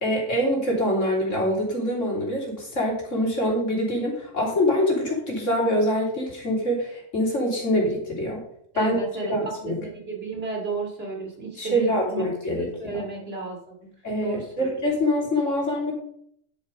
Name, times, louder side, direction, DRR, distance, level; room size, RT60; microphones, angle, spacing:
voice 1, 0.0-8.4 8.8-9.0 9.3-9.8 11.6-13.0 14.0-15.9, equal, 65° left, -2 dB, 3.7 m, -25 dB
voice 2, 8.7-13.9 14.2-14.8, right 4 dB, 45° right, -1 dB, 2.8 m, -34 dB
10.5 x 7.3 x 5.1 m, 0.66 s
omnidirectional pair, 1.4 m